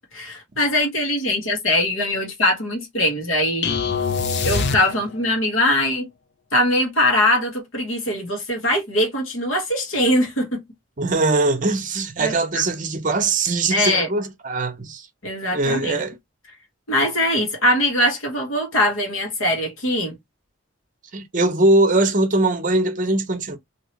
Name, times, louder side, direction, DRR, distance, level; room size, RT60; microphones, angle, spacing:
voice 1, 0.1-3.7 4.4-6.1 6.5-10.6 12.2-12.6 13.7-14.1 15.2-16.0 16.9-20.2, left 1 dB, 90° left, 1.4 m, -21 dB
sound 1, 3.6-5.4, left 5 dB, 55° left, 0.5 m, -24 dB
voice 2, 11.0-15.1 15.5-16.2 21.1-23.6, right 2 dB, 40° right, 0.7 m, -21 dB
2.9 x 2.9 x 3.0 m
head